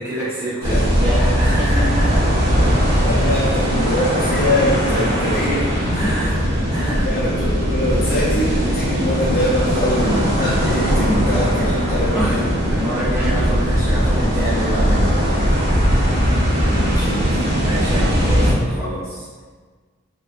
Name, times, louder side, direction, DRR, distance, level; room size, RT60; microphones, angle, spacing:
voice 1, 0.0-2.3 4.9-5.1 5.9-6.3 6.7-7.1 11.6-11.7 12.1-12.3 12.7-15.3 17.6-19.3, equal, 15° right, -11 dB, 0.9 m, -27 dB
sound 1, 0.6-18.5, equal, 55° right, 0.5 m, -19 dB
voice 2, 0.7-1.3 2.6-2.7 3.0-6.4 6.9-12.5 16.6-17.2, left 1 dB, 45° left, -8 dB, 0.5 m, -23 dB
2.9 x 2.0 x 2.5 m, 1.5 s
head